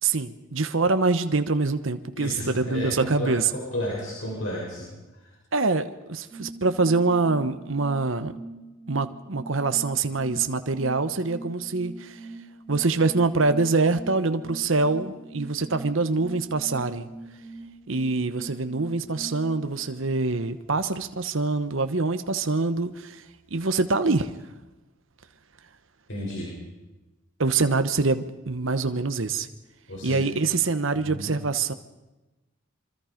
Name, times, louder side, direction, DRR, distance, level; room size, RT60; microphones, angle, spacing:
voice 1, 0.0-3.5 5.5-8.3 8.9-12.3 12.7-17.1 17.9-23.2 23.5-24.3 27.4-29.5 30.0-31.7, right 3 dB, 75° right, 9 dB, 1.1 m, -25 dB
voice 2, 2.2-4.9 5.1-5.3 26.1-26.5 29.9-30.2 30.9-31.3, left 1 dB, 65° left, -4 dB, 7.7 m, -32 dB
sound 1, 6.3-20.7, right 2 dB, 10° right, 5.0 m, -42 dB
26.0 x 25.0 x 5.2 m, 1.1 s
head